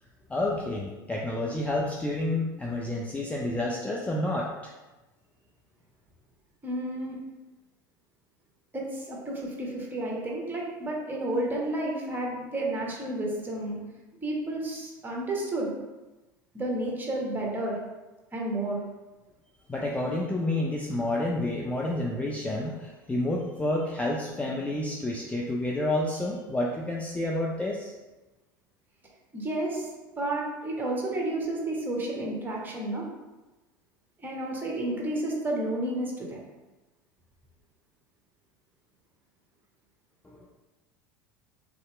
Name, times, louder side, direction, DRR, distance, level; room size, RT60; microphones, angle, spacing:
voice 1, 0.3-4.7 19.7-27.9 40.2-40.5, left 1 dB, 10° left, -3 dB, 0.5 m, -29 dB
voice 2, 6.6-7.2 8.7-13.8 14.2-15.7 16.5-17.8 18.3-18.8 29.3-29.9 30.2-33.0 34.2-36.4, right 1 dB, 20° right, -2 dB, 1.2 m, -31 dB
3.7 x 2.8 x 3.2 m, 1.1 s
hypercardioid pair, 80°, 11 cm